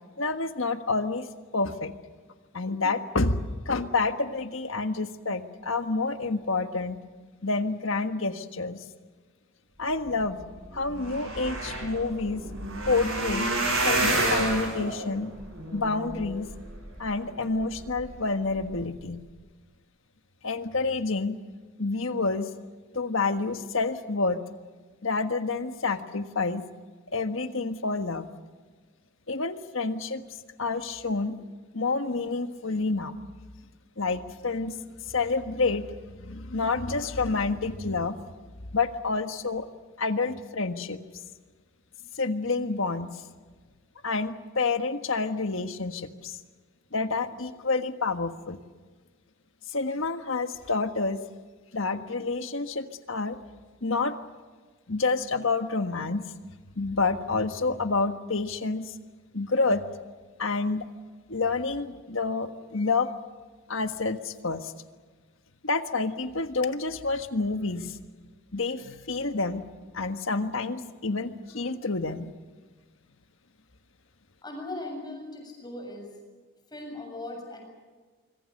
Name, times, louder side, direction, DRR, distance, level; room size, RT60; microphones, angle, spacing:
voice 1, 0.2-1.3 1.5-1.9 2.5-7.0 7.4-8.8 9.8-10.4 10.7-12.4 12.9-13.5 13.8-15.3 15.7-16.5 17.0-19.2 20.4-21.4 21.8-22.5 22.9-24.4 25.0-26.6 27.1-28.3 29.3-30.2 30.6-31.4 31.7-33.1 34.0-34.7 35.0-38.2 38.7-39.7 40.0-41.0 42.1-43.1 44.0-46.4 46.9-48.6 49.7-51.2 51.7-53.4 53.8-54.1 54.9-56.2 56.8-58.9 59.3-59.9 60.4-60.9 61.3-63.1 63.7-64.7 65.6-68.1 68.5-69.6 69.9-72.3, left 3 dB, 70° left, 8 dB, 1.5 m, -28 dB
sound 1, 10.4-10.5 10.7-17.1 17.6-18.1 18.5-18.7 19.0-19.1, right 2 dB, 70° right, 7.8 m, -29 dB
voice 2, 74.4-76.1 76.7-77.6, left 2 dB, 20° left, 1 dB, 7.4 m, -38 dB
26.0 x 24.0 x 6.6 m, 1.4 s
head